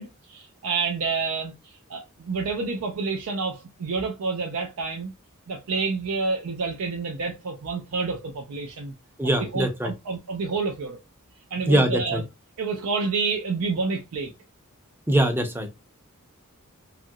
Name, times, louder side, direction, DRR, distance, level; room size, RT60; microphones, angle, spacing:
voice 1, 0.0-5.1 5.5-8.9 9.5-11.0 11.5-12.2 12.6-14.3, right 4 dB, 75° right, 0.4 m, -29 dB
voice 2, 9.2-9.9 11.7-12.2 15.1-15.7, right 1 dB, 10° right, 0.5 m, -22 dB
2.7 x 2.5 x 2.6 m
head